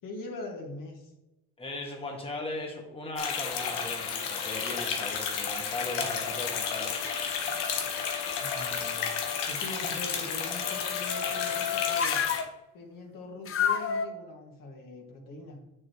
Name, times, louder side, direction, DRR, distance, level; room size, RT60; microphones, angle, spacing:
voice 1, 0.0-1.1 5.9-6.3 8.4-9.1 9.5-12.2 12.7-15.6, left 2 dB, 60° left, 0 dB, 1.8 m, -42 dB
voice 2, 1.6-7.0, left 2 dB, 15° left, 0 dB, 1.5 m, -37 dB
sound 1, 3.2-12.4, left 6 dB, 85° left, 1.1 m, -32 dB
sound 2, 4.1-4.9 5.5-9.5 10.3-12.5 13.5-14.1, left 8 dB, 35° left, 0.6 m, -34 dB
6.8 x 6.5 x 3.0 m, 0.97 s
supercardioid pair, 85°, 38 cm